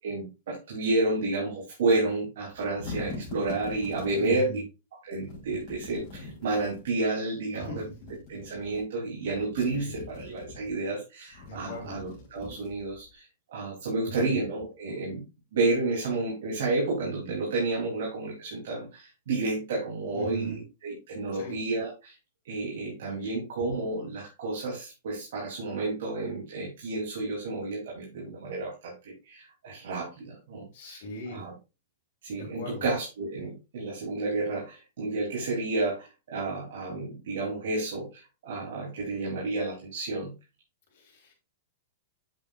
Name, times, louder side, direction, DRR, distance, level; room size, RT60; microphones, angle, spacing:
voice 1, 0.0-4.5 5.1-7.9 8.3-15.2 15.5-22.1 22.4-31.0 31.3-31.5 32.2-40.3, right 2 dB, 55° right, -4 dB, 3.3 m, -31 dB
sound 1, 2.5-4.4 5.2-6.8 7.8-8.8 9.2-10.7 11.3-13.1, left 3 dB, 25° left, 4.2 m, -43 dB
voice 2, 4.1-4.6 7.6-7.9 9.7-9.9 11.4-12.0 14.0-14.4 20.1-20.6 21.3-21.6 23.3-23.4 30.7-31.4 32.3-32.8 40.9-41.3, equal, 40° left, 0 dB, 3.5 m, -40 dB
8.7 x 7.0 x 2.5 m, 0.27 s
supercardioid pair, 180°, 0 cm